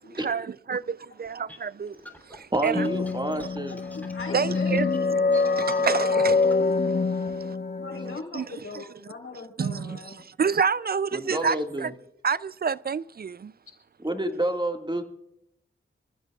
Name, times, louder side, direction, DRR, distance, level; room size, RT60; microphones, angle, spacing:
voice 1, 0.2-1.9 2.3-2.8 4.3-4.9 5.3-7.6 8.3-8.4 9.6-10.0 10.4-11.9 12.2-13.5, right 6 dB, 45° right, 0.4 m, -28 dB
sound 1, 1.3-6.6, equal, 10° left, 3.2 m, -47 dB
voice 2, 2.5-3.8 11.1-11.9 14.0-15.0, right 1 dB, 20° right, 1.9 m, -28 dB
sound 2, 2.7-8.2, left 4 dB, 50° left, 1.2 m, -25 dB
voice 3, 3.7-4.9 7.2-7.3 7.8-10.2, left 3 dB, 90° left, 3.8 m, -40 dB
26.5 x 14.5 x 2.4 m
cardioid pair, 50°, 21 cm